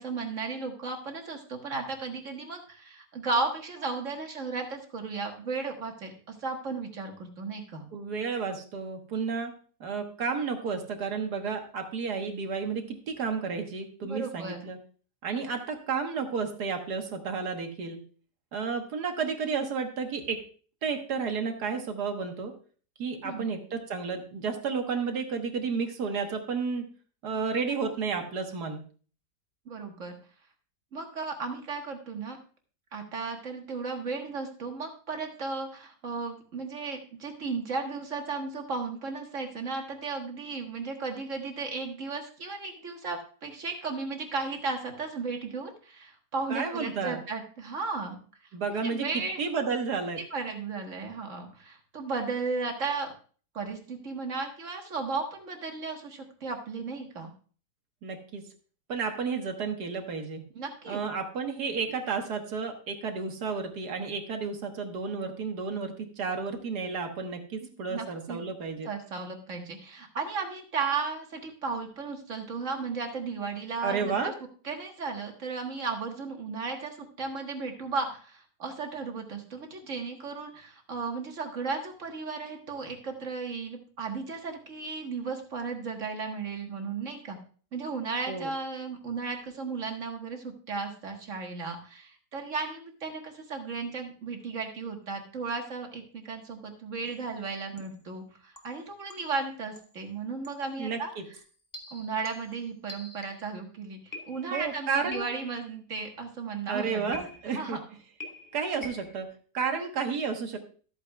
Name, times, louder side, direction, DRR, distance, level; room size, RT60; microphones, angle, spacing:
voice 1, 0.0-7.8 14.0-14.7 23.2-23.5 29.7-30.2 30.9-32.4 32.9-48.2 48.8-49.4 50.3-53.1 53.5-57.3 60.5-61.0 67.9-68.4 68.9-74.3 74.6-87.4 87.7-101.1 101.9-107.2 107.5-107.8, right 4 dB, 50° right, 3 dB, 1.7 m, -35 dB
voice 2, 7.9-9.5 9.8-14.8 15.2-18.0 18.5-20.4 20.8-22.5 23.0-26.8 27.2-28.8 46.5-47.2 48.5-50.2 58.0-58.4 58.9-60.4 60.9-68.9 73.8-74.3 88.3-88.5 100.8-101.2 104.5-105.3 106.7-107.8 108.5-109.3 109.5-110.6, right 5 dB, 70° right, 5 dB, 1.8 m, -32 dB
sound 1, 97.0-97.3 97.8-98.1 98.6-99.4 99.7-100.0 100.4-100.7 101.4-103.6 104.1-104.7 105.1-105.7 107.1-107.7 108.2-109.2, left 2 dB, 20° left, 0.6 m, -46 dB
13.5 x 8.4 x 2.3 m, 0.41 s
omnidirectional pair, 1.8 m